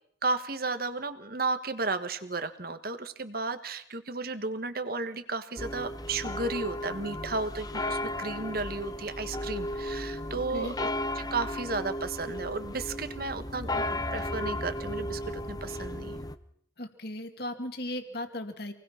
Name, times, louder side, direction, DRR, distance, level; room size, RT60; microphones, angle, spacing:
voice 1, 0.2-10.9 11.1-16.2, right 3 dB, 50° right, 10 dB, 1.6 m, -33 dB
sound 1, 5.6-16.4, left 1 dB, 20° left, 0.9 m, -35 dB
voice 2, 16.8-18.7, left 1 dB, 55° left, 7 dB, 2.5 m, -36 dB
26.5 x 20.0 x 5.9 m, 0.68 s
head